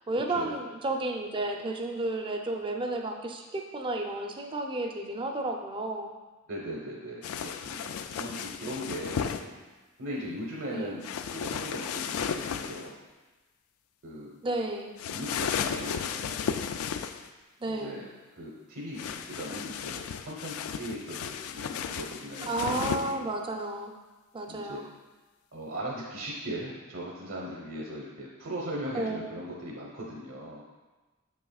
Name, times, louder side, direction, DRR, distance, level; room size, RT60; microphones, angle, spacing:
voice 1, 0.0-6.1 10.7-11.0 14.4-14.9 17.6-18.1 22.5-24.0 24.3-24.9 28.9-29.2, right 2 dB, 25° right, 3 dB, 0.5 m, -32 dB
voice 2, 6.5-9.6 10.0-11.0 11.3-13.0 14.0-14.3 15.1-16.4 17.7-18.1 18.4-23.3 24.5-24.8 25.5-30.6, equal, 65° right, -3 dB, 1.0 m, -39 dB
sound 1, 7.2-9.4 11.0-12.9 15.0-17.3 19.0-23.1, left 7 dB, 90° left, 0.3 m, -34 dB
7.2 x 6.0 x 2.3 m, 1.2 s
head